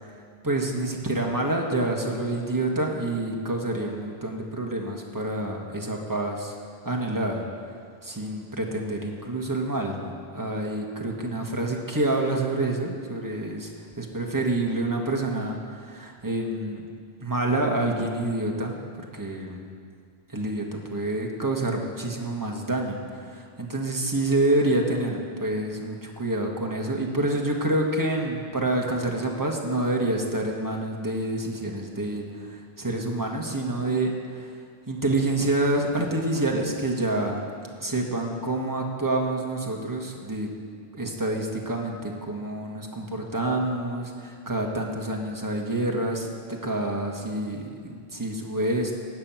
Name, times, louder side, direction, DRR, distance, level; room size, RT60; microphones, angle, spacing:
voice 1, 0.4-6.5 6.8-7.4 8.0-13.7 14.0-16.8 17.2-18.8 19.1-19.6 20.3-34.5 34.9-37.4 37.8-40.5 40.9-48.9, right 2 dB, 20° right, 0 dB, 1.5 m, -27 dB
15.5 x 6.1 x 9.0 m, 2.1 s
omnidirectional pair, 1.1 m